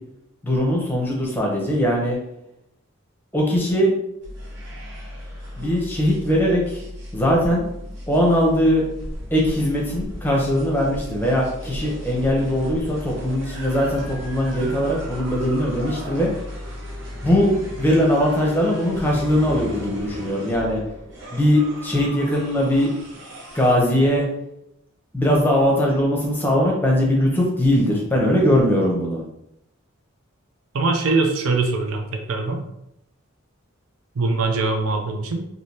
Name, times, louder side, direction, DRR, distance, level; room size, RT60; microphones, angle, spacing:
voice 1, 0.4-2.2 3.3-3.9 5.6-6.8 7.1-7.7 8.1-8.8 9.3-16.3 17.2-20.8 21.3-22.9 23.5-24.3 25.1-29.2, equal, 10° left, -2 dB, 0.7 m, -20 dB
sound 1, 4.2-23.7, equal, 55° right, 0.8 m, -35 dB
voice 2, 30.7-32.6 34.2-35.5, right 3 dB, 80° right, 4 dB, 0.5 m, -22 dB
3.3 x 2.7 x 2.7 m, 0.81 s
head